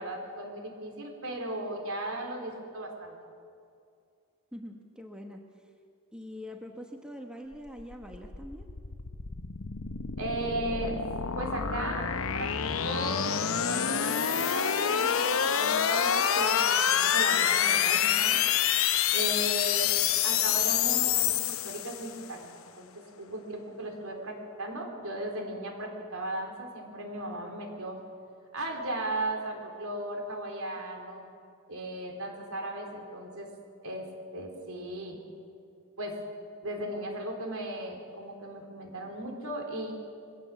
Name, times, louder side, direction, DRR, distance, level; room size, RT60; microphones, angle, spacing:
voice 1, 0.0-3.1 10.2-11.0 11.4-12.1 12.3-18.4 19.1-19.9 20.2-22.5 22.8-28.0 28.5-31.2 31.7-33.5 33.8-35.2 36.0-36.2 36.6-39.9, right 1 dB, 70° right, 2 dB, 3.9 m, -36 dB
voice 2, 4.5-5.4 6.1-8.7, equal, 5° right, 2 dB, 1.2 m, -43 dB
sound 1, 7.7-22.2, left 9 dB, 65° left, 0.8 m, -27 dB
22.5 x 17.0 x 7.3 m, 2.4 s
head